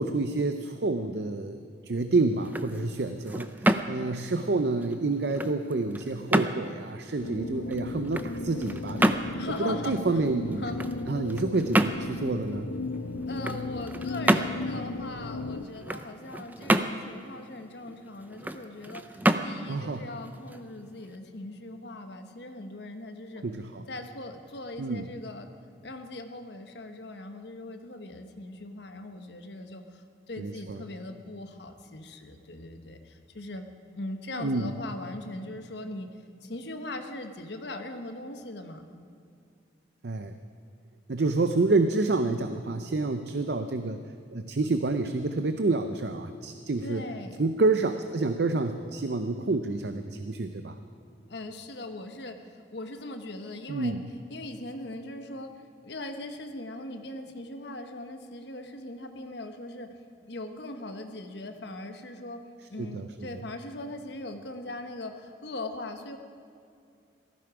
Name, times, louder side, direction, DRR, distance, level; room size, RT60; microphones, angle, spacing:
voice 1, 0.0-9.1 9.6-10.6 11.1-12.7 19.7-20.1 23.4-23.8 24.8-25.0 30.4-30.8 34.3-34.7 40.0-40.3 41.1-44.0 44.3-47.0 47.4-50.8 53.7-54.1 62.8-63.4, right 3 dB, 60° right, 8 dB, 0.6 m, -28 dB
sound 1, 2.3-21.2, right 1 dB, 10° right, 0.4 m, -31 dB
sound 2, 7.2-15.7, left 3 dB, 80° left, 0.6 m, -35 dB
voice 2, 9.4-10.0 10.6-10.8 13.3-23.4 23.9-25.5 25.8-33.6 33.9-36.1 36.4-38.8 46.8-47.5 51.3-62.4 62.7-66.2, left 2 dB, 65° left, 6 dB, 1.2 m, -40 dB
18.0 x 14.5 x 4.9 m, 2.4 s
head